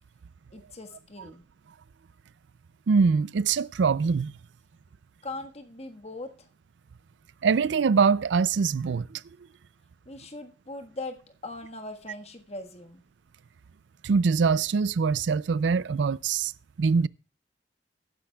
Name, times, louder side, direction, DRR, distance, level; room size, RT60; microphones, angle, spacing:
voice 1, 0.5-1.4 5.2-6.3 10.0-11.2 11.4-13.0, left 2 dB, 35° left, 1.4 m, -40 dB
voice 2, 2.9-4.3 7.4-9.2 14.0-16.5 16.8-17.1, right 5 dB, 85° right, 0.4 m, -23 dB
19.0 x 10.0 x 2.3 m
head